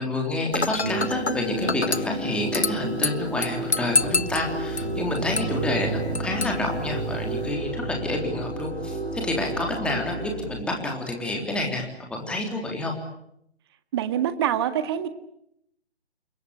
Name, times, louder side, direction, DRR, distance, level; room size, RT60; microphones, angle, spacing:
voice 1, 0.0-12.9, left 2 dB, 5° left, 1 dB, 3.6 m, -29 dB
Dishes pots and pans / Glass, 0.5-7.5, left 4 dB, 80° left, 1.1 m, -30 dB
sound 1, 0.8-10.3, right 3 dB, 70° right, 4.8 m, -32 dB
sound 2, 4.0-10.6, left 2 dB, 40° left, 5.9 m, -38 dB
voice 2, 13.9-15.1, right 10 dB, 25° right, 11 dB, 1.8 m, -25 dB
28.5 x 24.5 x 8.2 m, 0.76 s
figure-of-eight pair, 140°, 33 cm